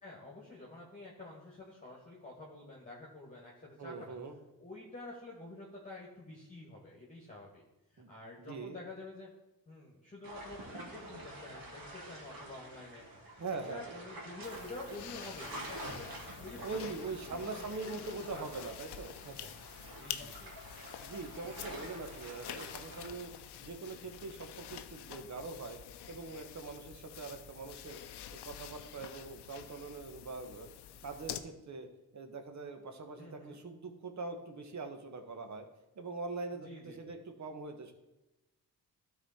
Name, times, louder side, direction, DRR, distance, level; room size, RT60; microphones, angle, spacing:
voice 1, 0.0-4.2 4.6-7.6 7.9-9.3 9.7-16.1 16.4-18.5 19.9-20.5 33.2-33.6 36.6-37.2, left 2 dB, 20° left, -4 dB, 1.9 m, -49 dB
voice 2, 3.8-4.3 8.0-8.1 8.4-8.8 13.4-13.9 16.6-19.5 21.0-23.3 23.6-25.8 26.1-28.0 28.3-30.7 31.0-31.9 32.1-35.7 36.0-37.9, right 3 dB, 45° right, 5 dB, 1.3 m, -43 dB
sound 1, 10.2-23.1, right 1 dB, 60° right, 2.2 m, -48 dB
sound 2, 14.4-31.4, left 10 dB, 85° left, 0.6 m, -48 dB
12.5 x 4.2 x 4.3 m, 1.0 s
cardioid pair, 85°, 39 cm